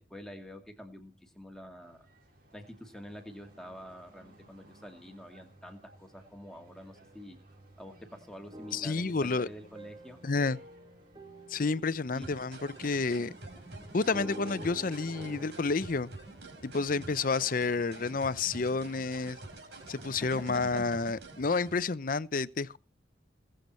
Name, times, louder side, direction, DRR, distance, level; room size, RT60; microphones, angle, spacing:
voice 1, 0.0-2.0 2.5-7.4 7.8-10.2 12.1-12.3 20.5-20.6, equal, 5° left, 2.4 m, -47 dB
sound 1, 1.8-20.9, right 1 dB, 50° right, 5.1 m, -60 dB
sound 2, 3.1-15.5, equal, 25° right, 2.1 m, -50 dB
voice 2, 8.7-9.5 10.2-10.6 11.5-13.3 13.9-16.1 16.6-19.4 19.9-22.8, left 4 dB, 50° left, 0.6 m, -30 dB
sound 3, 12.2-21.8, right 2 dB, 65° right, 4.8 m, -47 dB
20.5 x 7.9 x 4.4 m
head